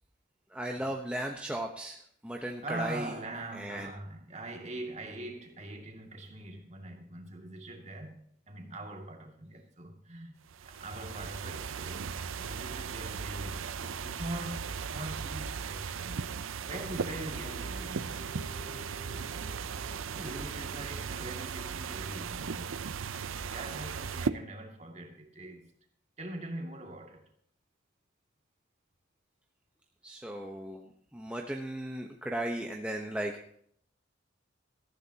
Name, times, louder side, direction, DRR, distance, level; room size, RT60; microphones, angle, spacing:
voice 1, 0.5-2.0 2.2-3.1 3.5-3.9 20.2-20.3 30.0-33.6, right 1 dB, 5° right, 0.9 m, -36 dB
voice 2, 2.4-10.3 10.7-16.3 16.6-18.3 19.1-19.8 20.2-23.0 23.5-25.7 26.2-27.2, right 1 dB, 35° right, 2.3 m, -43 dB
sound 1, 10.5-24.3, right 6 dB, 85° right, 0.6 m, -37 dB
sound 2, 16.7-23.1, right 1 dB, 40° left, 3.4 m, -53 dB
18.5 x 14.5 x 2.9 m
head